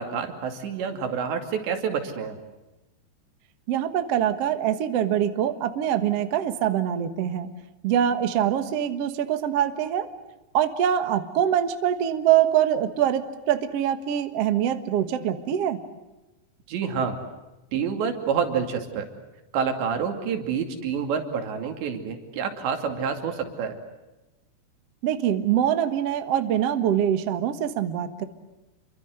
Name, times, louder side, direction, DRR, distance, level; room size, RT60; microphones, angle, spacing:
voice 1, 0.0-2.4 16.7-17.2 17.7-19.1 19.5-23.8, right 6 dB, 80° right, 5 dB, 4.9 m, -28 dB
voice 2, 3.7-7.5 7.8-10.1 10.5-15.8 25.0-28.2, right 10 dB, 65° right, 9 dB, 1.6 m, -24 dB
29.0 x 24.0 x 8.0 m, 1.1 s
omnidirectional pair, 5.0 m